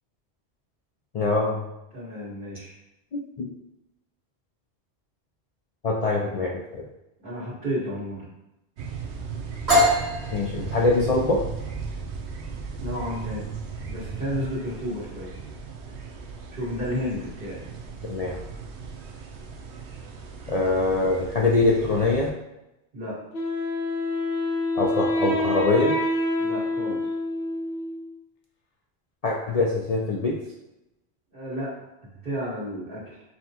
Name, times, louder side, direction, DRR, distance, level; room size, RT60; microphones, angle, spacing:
voice 1, 1.1-1.6 3.1-3.5 5.8-6.8 10.3-11.4 18.1-18.4 20.5-22.3 24.8-25.9 29.2-30.4, left 3 dB, 50° left, -3 dB, 0.5 m, -23 dB
voice 2, 1.9-2.8 7.2-8.3 12.8-13.5 13.9-15.3 16.5-17.7 22.9-23.2 26.4-27.1 31.3-31.8 32.0-33.2, equal, 55° right, -8 dB, 1.8 m, -32 dB
sound 1, 8.8-22.3, right 5 dB, 85° right, 0.9 m, -37 dB
sound 2, 9.7-17.3, left 1 dB, 70° right, 1.8 m, -28 dB
Wind instrument woodwind instrument, 23.3-28.1, left 1 dB, 70° left, 0.9 m, -27 dB
5.6 x 2.2 x 2.8 m, 0.91 s
omnidirectional pair, 1.1 m